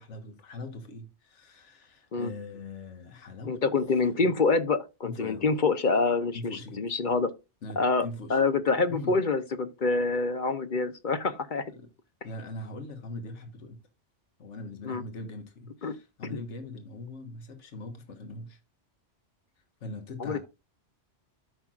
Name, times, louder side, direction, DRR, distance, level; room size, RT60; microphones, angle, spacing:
voice 1, 0.0-3.8 4.1-4.2 5.0-5.5 6.3-6.8 7.6-8.4 8.9-9.2 11.7-11.9 12.2-13.8 14.4-18.6 19.8-20.4, left 2 dB, 75° left, 1.6 m, -41 dB
voice 2, 3.5-7.3 7.8-11.7 14.8-15.0 15.8-15.9 20.2-20.4, left 3 dB, 50° left, 0.8 m, -26 dB
13.0 x 5.9 x 2.4 m
omnidirectional pair, 1.2 m